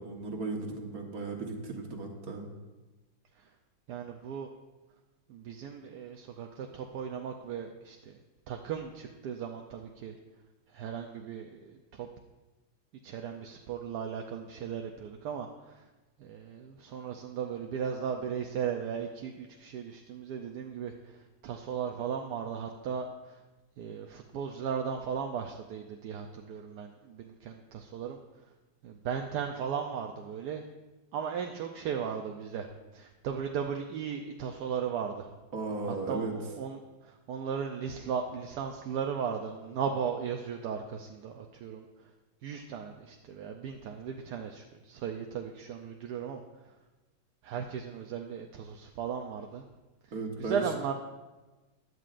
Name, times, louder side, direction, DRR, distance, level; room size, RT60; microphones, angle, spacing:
voice 1, 0.0-2.5 35.5-36.3 50.1-50.7, right 3 dB, 50° right, 1 dB, 1.8 m, -36 dB
voice 2, 3.9-4.5 5.3-8.2 8.5-10.1 10.7-12.1 13.0-15.8 16.2-20.9 21.4-23.1 23.8-28.2 28.8-30.6 31.1-32.7 32.9-35.3 35.9-41.8 42.4-46.4 47.4-49.6 50.4-50.9, right 7 dB, 70° right, 3 dB, 1.1 m, -36 dB
16.0 x 11.0 x 2.5 m, 1.2 s
omnidirectional pair, 2.1 m